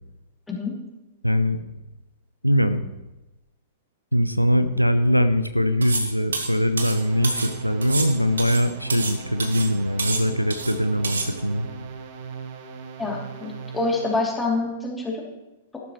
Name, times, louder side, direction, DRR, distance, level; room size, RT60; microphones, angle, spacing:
voice 1, 1.2-1.6 2.4-2.9 4.1-11.7, equal, 90° right, 11 dB, 0.7 m, -22 dB
sound 1, 5.8-6.1 6.3-7.5 7.8-9.2 9.4-9.7 10.0-10.7 11.0-11.3, right 4 dB, 70° right, 1.7 m, -29 dB
sound 2, 6.8-14.4, right 6 dB, 40° right, 1.3 m, -38 dB
voice 2, 13.0-15.2 15.7-15.8, left 3 dB, 10° left, -2 dB, 3.0 m, -26 dB
14.0 x 12.5 x 3.2 m, 1.0 s
figure-of-eight pair, 105°, 0 cm